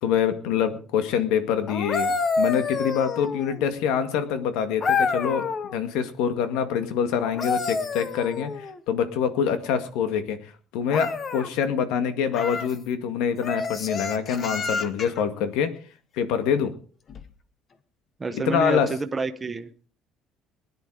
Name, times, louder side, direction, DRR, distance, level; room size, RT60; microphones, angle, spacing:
voice 1, 0.0-2.1 2.4-5.5 5.7-10.4 10.7-15.7 16.2-16.7 18.5-18.9, left 8 dB, 80° left, 9 dB, 2.1 m, -25 dB
sound 1, 1.7-3.7 4.8-5.8 7.2-8.8 10.9-11.5 12.3-12.8 13.4-15.2 17.1-17.3, left 4 dB, 25° left, 1.0 m, -28 dB
voice 2, 18.2-19.9, right 4 dB, 15° right, 7 dB, 0.9 m, -29 dB
19.5 x 10.5 x 4.9 m, 0.39 s
cardioid pair, 180°, 0 cm